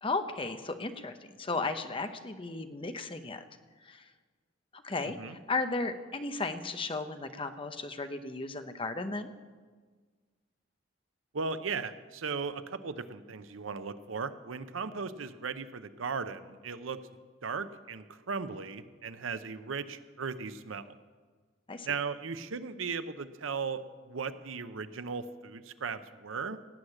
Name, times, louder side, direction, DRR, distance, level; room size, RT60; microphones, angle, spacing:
voice 1, 0.0-3.4 3.8-4.1 4.7-9.3 21.7-21.9, left 3 dB, 25° left, 8 dB, 0.8 m, -35 dB
voice 2, 11.3-17.0 17.4-21.0 21.8-26.6, right 5 dB, 85° right, 12 dB, 0.7 m, -37 dB
18.0 x 6.4 x 8.6 m, 1.4 s
head